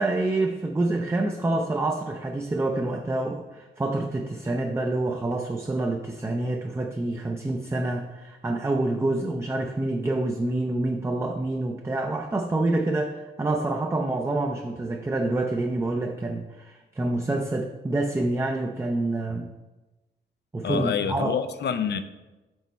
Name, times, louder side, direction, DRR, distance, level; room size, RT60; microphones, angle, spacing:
voice 1, 0.0-19.5 20.5-21.3, right 2 dB, 15° right, 2 dB, 0.4 m, -27 dB
voice 2, 20.6-22.0, left 7 dB, 60° left, 10 dB, 0.4 m, -27 dB
6.2 x 4.2 x 4.0 m, 1.1 s
wide cardioid pair, 140°, 20 cm